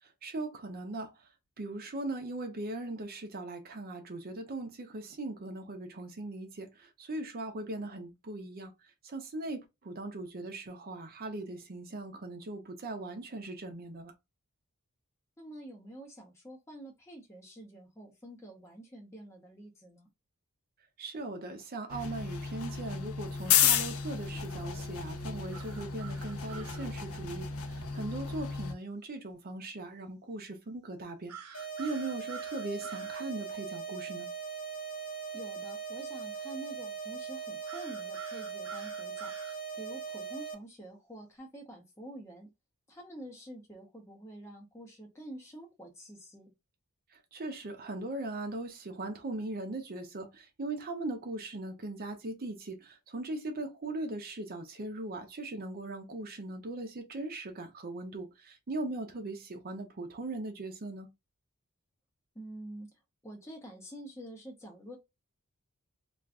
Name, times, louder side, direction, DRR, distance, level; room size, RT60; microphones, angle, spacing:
voice 1, 0.0-1.1 1.6-8.7 9.0-14.1 21.0-34.3 47.1-61.1, right 2 dB, 40° right, 0.5 m, -39 dB
voice 2, 15.4-20.1 35.3-42.5 42.9-46.5 62.3-62.9 63.2-65.0, right 1 dB, 10° left, 0.6 m, -47 dB
sound 1, 21.9-28.7, left 8 dB, 65° left, 0.5 m, -32 dB
sound 2, 25.5-26.9 31.3-33.2 37.7-39.6, right 7 dB, 75° right, 0.8 m, -47 dB
sound 3, 31.5-40.5, right 6 dB, 85° left, 1.1 m, -40 dB
2.4 x 2.2 x 3.5 m
head